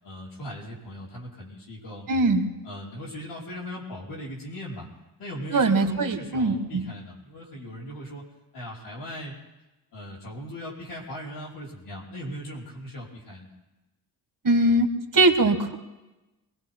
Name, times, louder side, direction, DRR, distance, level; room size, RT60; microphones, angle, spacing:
voice 1, 0.0-2.1 2.6-4.9 5.2-8.2 8.5-9.4 9.9-13.5, equal, 90° left, -6 dB, 5.5 m, -39 dB
voice 2, 2.1-2.5 5.5-6.9 14.4-14.9 15.1-15.8, right 2 dB, 50° right, 6 dB, 1.5 m, -21 dB
25.0 x 20.0 x 2.2 m, 1.1 s
cardioid pair, 65°, 41 cm